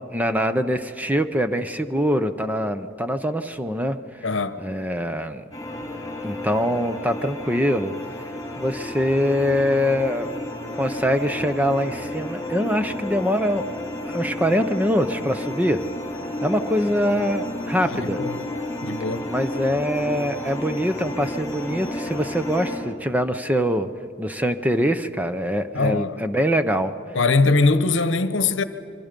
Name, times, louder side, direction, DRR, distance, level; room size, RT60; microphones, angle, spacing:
voice 1, 0.1-4.3 4.6-5.4 6.2-7.9 8.6-10.3 10.8-13.7 14.0-15.8 16.4-18.2 19.3-23.9 24.2-26.9, equal, 10° right, 0.7 m, -23 dB
voice 2, 4.2-4.6 17.8-18.4 18.8-19.3 25.7-26.2 27.1-28.6, left 3 dB, 70° left, 1.0 m, -21 dB
sound 1, 5.5-22.8, left 1 dB, 20° left, 4.9 m, -32 dB
26.0 x 24.0 x 5.2 m
head